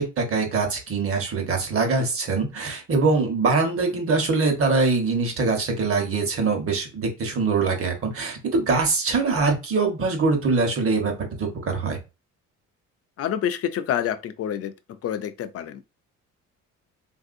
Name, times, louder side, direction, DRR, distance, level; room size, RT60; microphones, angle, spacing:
voice 1, 0.0-11.1 11.4-12.0, right 4 dB, 45° right, 1.1 m, -23 dB
voice 2, 13.2-14.7 15.0-15.8, left 10 dB, 50° left, 0.4 m, -27 dB
3.4 x 2.6 x 2.5 m
cardioid pair, 115°, 31 cm